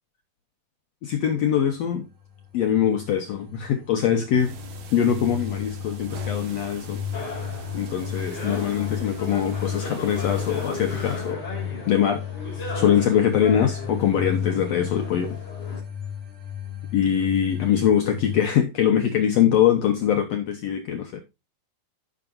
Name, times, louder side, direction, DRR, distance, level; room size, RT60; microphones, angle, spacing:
voice 1, 1.0-2.0 2.5-4.6 4.9-7.0 7.7-11.5 11.8-12.2 12.7-15.4 16.9-21.2, left 9 dB, 85° left, 1.4 m, -23 dB
sound 1, 2.1-18.4, left 10 dB, 45° right, 4.2 m, -33 dB
sound 2, 4.3-11.3, right 4 dB, 60° right, 2.3 m, -41 dB
sound 3, 7.1-15.8, left 2 dB, 40° left, 4.5 m, -37 dB
15.0 x 6.0 x 2.5 m
omnidirectional pair, 4.4 m